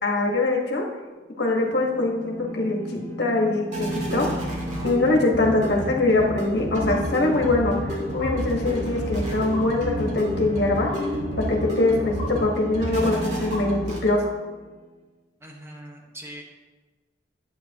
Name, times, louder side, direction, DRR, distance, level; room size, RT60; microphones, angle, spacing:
voice 1, 0.0-0.8 1.4-4.3 4.8-7.7 8.1-10.9 11.5-14.2, left 2 dB, 65° left, 0 dB, 1.5 m, -23 dB
sound 1, 1.7-14.4, equal, 45° right, 2.4 m, -30 dB
voice 2, 15.4-16.4, right 1 dB, 15° right, 0 dB, 1.2 m, -41 dB
11.5 x 8.2 x 2.9 m, 1.3 s
head